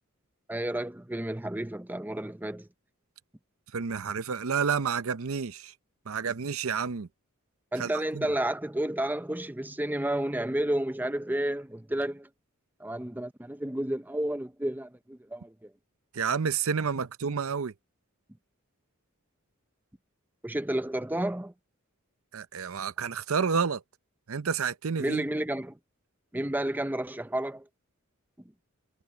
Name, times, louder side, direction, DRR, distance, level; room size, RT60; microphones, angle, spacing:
voice 1, 0.5-2.7 7.7-12.3 12.8-15.7 20.4-21.5 25.0-25.8 26.3-27.7, right 1 dB, 10° right, 0.7 m, -31 dB
voice 2, 3.7-5.7 6.1-7.1 7.8-8.3 16.1-17.7 22.3-23.8 24.3-25.2, right 6 dB, 70° right, 0.7 m, -30 dB
head